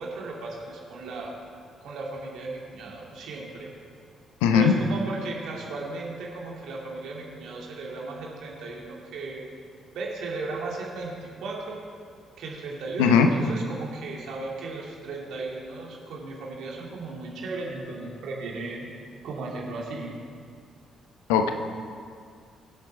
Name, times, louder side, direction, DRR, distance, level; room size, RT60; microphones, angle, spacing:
voice 1, 0.0-1.3 1.8-3.7 4.5-9.5 9.9-11.8 12.4-18.9 19.2-20.2, right 3 dB, 60° right, -2 dB, 2.7 m, -36 dB
voice 2, 4.4-4.7 13.0-13.3 21.3-21.5, left 7 dB, 70° left, 6 dB, 0.9 m, -18 dB
23.0 x 7.9 x 4.3 m, 2.2 s
figure-of-eight pair, 40°, 0 cm